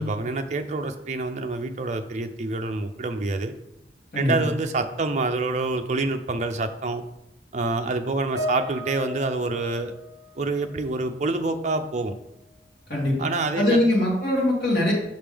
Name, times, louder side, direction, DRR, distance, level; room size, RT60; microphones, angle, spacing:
voice 1, 0.0-3.5 4.1-7.0 7.5-9.9 10.4-12.1 13.2-13.8, right 3 dB, 40° right, 6 dB, 0.5 m, -27 dB
voice 2, 4.1-4.5 12.9-13.3 13.6-14.9, left 1 dB, 55° left, -4 dB, 2.2 m, -22 dB
Piano, 8.4-11.0 11.3-11.6 12.4-12.5, left 2 dB, 60° right, 1.0 m, -35 dB
5.9 x 5.2 x 3.4 m, 0.86 s
head